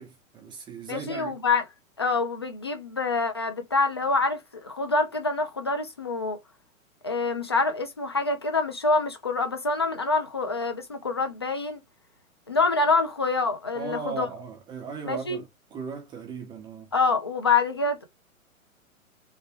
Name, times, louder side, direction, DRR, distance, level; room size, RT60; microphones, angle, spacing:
voice 1, 0.0-1.3 13.7-16.9, right 5 dB, 10° right, 0.6 m, -37 dB
voice 2, 0.9-1.6 2.0-6.4 7.0-11.8 12.5-14.3 15.1-15.4 16.9-18.0, left 3 dB, 20° left, 0.3 m, -26 dB
3.4 x 3.1 x 2.9 m
figure-of-eight pair, 115°, 42 cm